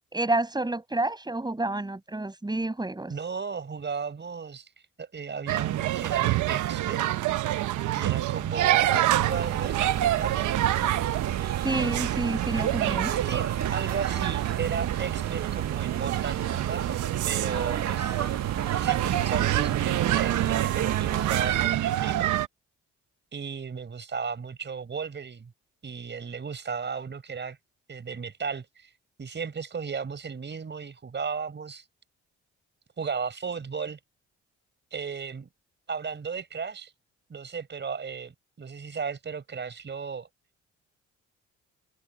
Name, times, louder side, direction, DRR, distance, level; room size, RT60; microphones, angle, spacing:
voice 1, 0.0-3.1 11.6-13.1, right 2 dB, 15° right, 6.4 m, -29 dB
voice 2, 3.1-4.7 5.0-7.0 7.9-10.6 13.2-16.8 17.2-18.3 18.8-22.3 23.3-25.5 25.8-27.6 27.9-28.9 29.2-31.8 33.0-34.0 34.9-35.5 35.9-36.9 37.3-40.3, right 5 dB, 35° right, 4.6 m, -35 dB
sound 1, 5.5-22.5, right 14 dB, 75° right, 0.9 m, -27 dB
sound 2, 9.2-21.7, right 9 dB, 60° right, 1.8 m, -32 dB
cardioid pair, 90°, 30 cm